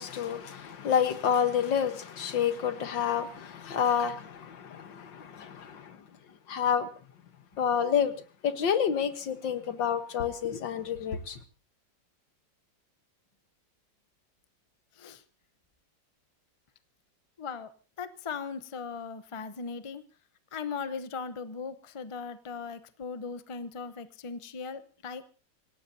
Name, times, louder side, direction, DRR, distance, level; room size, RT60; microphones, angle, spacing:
voice 1, 0.0-6.0 6.5-6.9 7.6-8.1 8.4-11.4, left 8 dB, 80° left, 2.0 m, -29 dB
voice 2, 17.4-17.7 18.0-20.0 20.5-25.3, left 5 dB, 30° left, 0.5 m, -38 dB
26.5 x 18.0 x 2.8 m
omnidirectional pair, 2.0 m